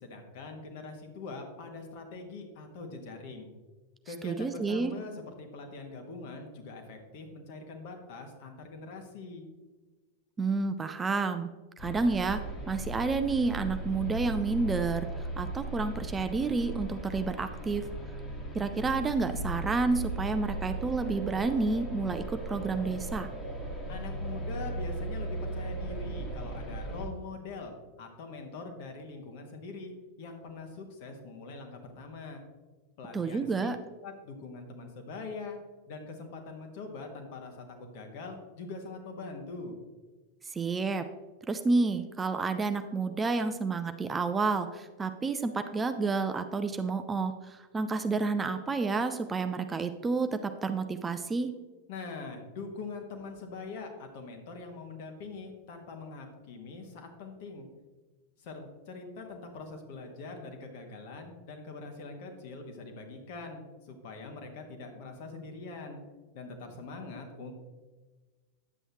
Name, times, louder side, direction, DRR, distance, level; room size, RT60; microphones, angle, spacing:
voice 1, 0.0-3.5 4.1-9.4 23.9-29.9 30.2-32.4 33.0-33.7 34.0-35.6 35.9-39.8 51.9-57.7 58.4-66.0 66.3-67.5, left 3 dB, 50° left, 4 dB, 1.5 m, -43 dB
voice 2, 4.2-4.9 10.4-11.5 11.8-12.4 12.7-17.9 18.5-23.3 33.1-33.8 40.4-41.1 41.5-51.5, right 4 dB, 15° right, 8 dB, 0.4 m, -30 dB
sound 1, 11.8-27.1, right 1 dB, 25° left, 1.6 m, -37 dB
9.9 x 7.9 x 3.0 m, 1.3 s
figure-of-eight pair, 90°, 0 cm